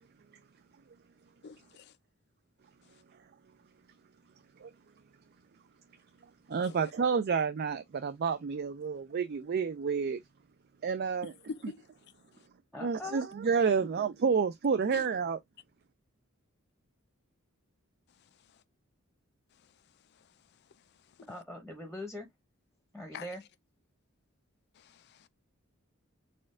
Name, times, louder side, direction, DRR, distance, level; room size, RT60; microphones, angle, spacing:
voice 1, 1.4-1.9 6.6-6.7 11.2-11.8 14.9-15.1 23.1-23.3 24.8-25.3, left 5 dB, 50° left, 0.4 m, -44 dB
voice 2, 6.5-10.2 10.8-11.3 11.6-11.7 12.8-15.4, right 5 dB, 50° right, 0.4 m, -29 dB
voice 3, 12.7-13.3 13.7-13.9 21.3-22.3 22.9-23.4, left 1 dB, ahead, 0.9 m, -42 dB
4.3 x 2.3 x 3.7 m
head